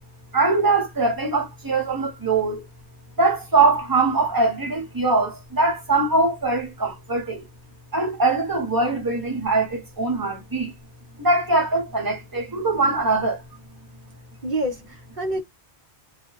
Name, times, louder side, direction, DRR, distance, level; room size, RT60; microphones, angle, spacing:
voice 1, 0.3-2.7 3.2-7.5 7.9-10.7 11.2-13.4, right 3 dB, 20° right, 0.8 m, -22 dB
voice 2, 14.4-15.4, right 1 dB, 50° right, 1.0 m, -27 dB
2.3 x 2.2 x 3.0 m
omnidirectional pair, 1.1 m